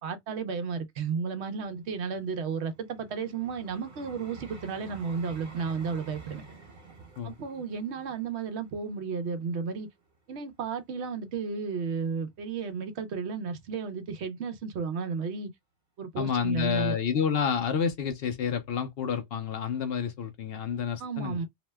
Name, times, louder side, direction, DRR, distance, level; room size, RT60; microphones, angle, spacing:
voice 1, 0.0-6.5 7.2-9.9 10.3-15.5 16.0-17.0 21.0-21.5, right 5 dB, 75° right, 1.0 m, -33 dB
Vehicle, 1.6-10.7 11.3-11.5, right 3 dB, 45° right, 1.2 m, -50 dB
voice 2, 16.2-21.4, left 7 dB, 65° left, 0.8 m, -29 dB
2.8 x 2.1 x 3.3 m
omnidirectional pair, 1.2 m